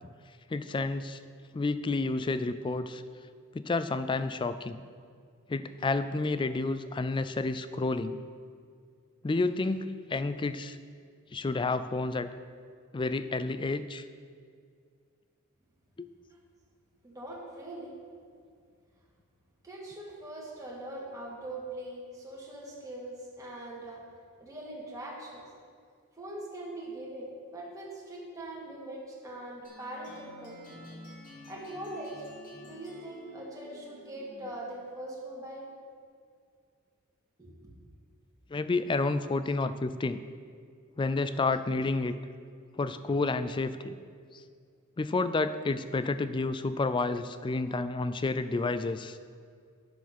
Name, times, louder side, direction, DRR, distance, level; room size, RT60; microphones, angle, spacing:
voice 1, 0.5-1.2 1.5-3.0 3.5-4.8 5.5-8.2 9.2-10.8 11.3-12.3 12.9-14.0 16.0-16.1 38.5-40.2 41.0-42.2 42.8-44.0 44.3-44.4 45.0-49.2, left 3 dB, 20° left, 12 dB, 0.3 m, -30 dB
voice 2, 17.0-17.9 19.6-24.0 24.4-25.4 26.2-30.8 31.5-32.3 32.6-35.7 37.4-37.5, right 1 dB, 15° right, -5 dB, 2.2 m, -42 dB
sound 1, 29.6-34.8, left 1 dB, 40° left, 2.7 m, -50 dB
10.5 x 7.0 x 6.0 m, 2.2 s
head